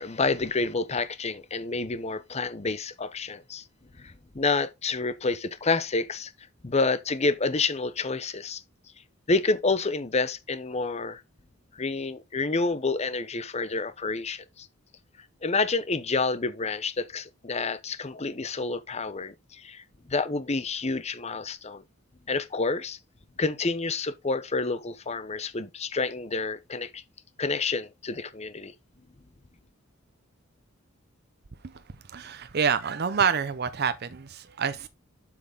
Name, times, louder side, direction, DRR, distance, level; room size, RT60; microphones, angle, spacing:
voice 1, 0.0-3.6 4.0-6.3 6.6-8.6 9.3-11.2 11.8-14.7 15.4-21.8 22.3-23.0 23.4-27.0 27.4-28.7, left 3 dB, 30° left, 0.8 m, -29 dB
voice 2, 32.1-34.9, right 6 dB, 50° right, 0.6 m, -27 dB
7.8 x 6.0 x 3.9 m
head